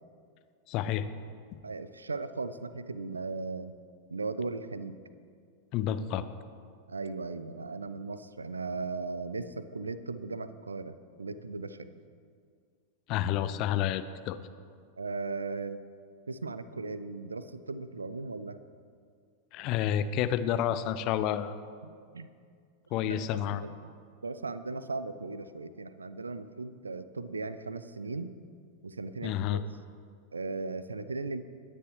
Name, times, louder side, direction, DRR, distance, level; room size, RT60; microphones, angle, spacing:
voice 1, 0.7-1.1 5.7-6.2 13.1-14.4 19.5-21.5 22.9-23.6 29.2-29.6, left 10 dB, 40° left, 12 dB, 0.6 m, -29 dB
voice 2, 1.6-3.7 4.1-5.0 6.9-11.9 15.0-15.8 16.3-18.6 21.8-22.3 23.0-23.2 23.5-23.9 24.2-28.3 28.8-29.6 30.3-31.4, right 3 dB, 75° right, 13 dB, 0.5 m, -37 dB
22.0 x 9.9 x 3.1 m, 2.2 s
figure-of-eight pair, 90°, 0 cm